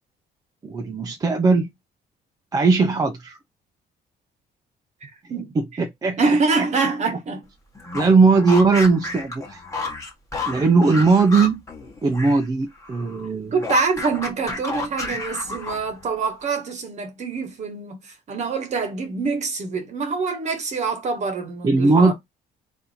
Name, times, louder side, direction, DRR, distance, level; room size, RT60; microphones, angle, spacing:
voice 1, 0.6-1.7 2.5-3.4 5.6-6.2 7.9-9.6 10.5-11.6 12.0-13.5 21.6-22.1, right 4 dB, 20° right, 0.5 m, -18 dB
voice 2, 5.0-5.5 6.2-7.5 13.5-22.1, right 4 dB, 45° right, 1.3 m, -25 dB
sound 1, 7.8-12.5 12.8-16.0, left 3 dB, 20° left, 1.2 m, -31 dB
4.1 x 2.6 x 4.1 m
cardioid pair, 150°, 17 cm